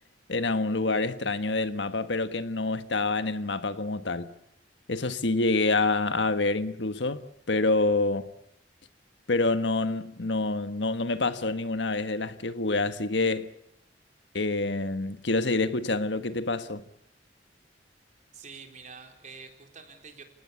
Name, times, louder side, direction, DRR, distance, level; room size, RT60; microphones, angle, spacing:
voice 1, 0.3-4.3 4.9-8.3 9.3-13.5 14.3-16.8, left 3 dB, 80° left, 1.5 m, -27 dB
voice 2, 18.3-20.2, right 5 dB, 45° right, 4.2 m, -47 dB
29.5 x 18.5 x 8.4 m
head